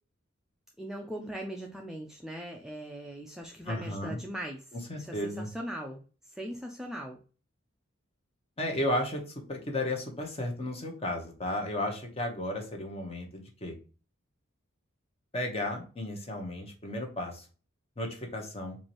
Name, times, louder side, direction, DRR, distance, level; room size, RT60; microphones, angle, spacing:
voice 1, 0.8-4.7 4.9-6.0 6.3-7.2, equal, ahead, 0 dB, 0.4 m, -40 dB
voice 2, 3.7-4.2 4.9-5.5 8.6-13.7 15.3-17.4 18.0-18.8, left 1 dB, 30° left, 3 dB, 0.9 m, -34 dB
4.5 x 2.6 x 2.9 m, 0.36 s
head